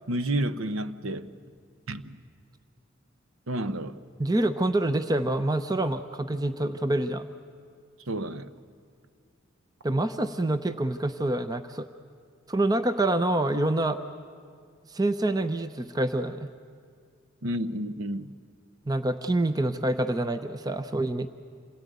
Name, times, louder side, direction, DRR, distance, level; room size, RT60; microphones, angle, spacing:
voice 1, 0.1-1.3 1.9-2.2 3.5-4.0 8.1-8.5 17.4-18.3, right 1 dB, 85° right, 0.9 m, -30 dB
voice 2, 4.2-7.2 9.8-11.9 12.5-14.0 14.9-16.5 18.9-21.3, right 1 dB, 20° right, 0.6 m, -26 dB
27.5 x 17.5 x 9.3 m
head